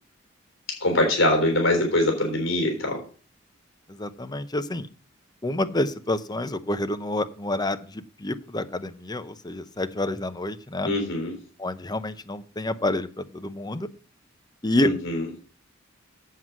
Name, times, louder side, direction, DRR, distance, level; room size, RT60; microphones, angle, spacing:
voice 1, 0.8-3.0 10.8-11.4 14.8-15.3, left 1 dB, 75° left, 2 dB, 3.7 m, -23 dB
voice 2, 4.0-4.9 5.4-7.8 8.2-10.9 11.6-13.1 13.3-13.9 14.6-14.9, left 1 dB, 20° left, 10 dB, 0.7 m, -28 dB
7.9 x 7.5 x 6.2 m, 0.39 s
head